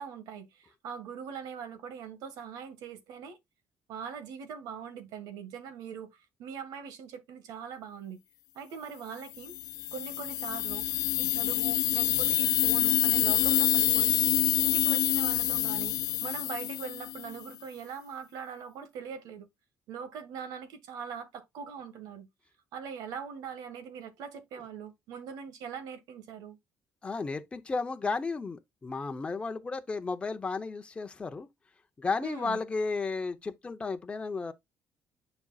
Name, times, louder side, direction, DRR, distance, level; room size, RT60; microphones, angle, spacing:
voice 1, 0.0-3.4 3.9-8.2 8.5-9.6 9.9-10.9 11.2-14.2 14.6-19.5 19.9-22.3 22.7-26.6 32.2-32.6, right 7 dB, 85° right, 1.7 m, -42 dB
sound 1, 9.4-17.4, left 14 dB, 65° left, 0.4 m, -27 dB
voice 2, 27.0-31.5 32.0-34.5, left 4 dB, 20° left, 0.8 m, -33 dB
10.0 x 5.3 x 2.4 m
cardioid pair, 160°, 6 cm